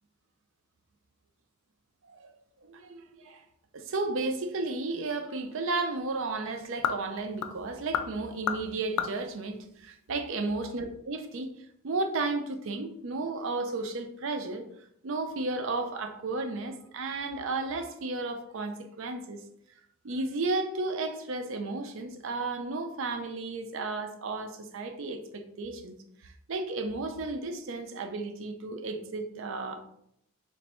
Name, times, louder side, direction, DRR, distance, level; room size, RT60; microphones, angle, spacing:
voice 1, 2.6-3.4 3.7-11.5 11.8-14.7 15.0-19.4 20.0-25.9 26.2-29.8, right 3 dB, 60° right, 0.5 m, -33 dB
sound 1, 4.7-10.5, left 7 dB, 75° left, 0.3 m, -37 dB
3.2 x 2.5 x 4.2 m
head